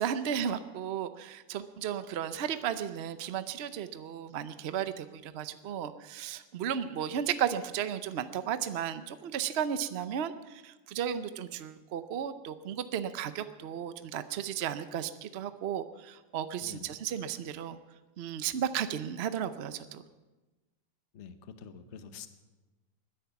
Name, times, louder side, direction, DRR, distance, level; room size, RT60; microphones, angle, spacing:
voice 1, 0.0-17.8 18.2-20.0, right 9 dB, 75° right, 11 dB, 0.6 m, -34 dB
voice 2, 21.1-22.3, left 7 dB, 45° left, 10 dB, 1.1 m, -47 dB
20.5 x 10.5 x 5.9 m, 1.1 s
omnidirectional pair, 2.0 m